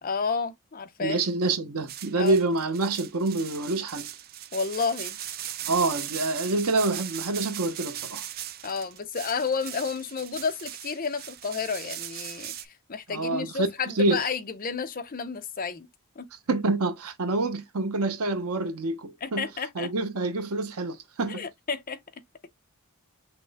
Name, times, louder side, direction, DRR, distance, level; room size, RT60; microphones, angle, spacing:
voice 1, 0.0-1.2 2.2-2.4 4.5-5.2 8.6-15.9 16.2-16.3 19.2-19.9 21.3-22.0, left 5 dB, 40° left, 0.6 m, -31 dB
voice 2, 1.0-4.1 5.7-8.2 13.1-13.7 13.9-14.2 16.5-19.4 19.7-21.4, right 2 dB, 80° right, 0.8 m, -27 dB
sound 1, 1.9-12.6, right 11 dB, 45° right, 0.4 m, -39 dB
5.9 x 2.1 x 3.4 m
head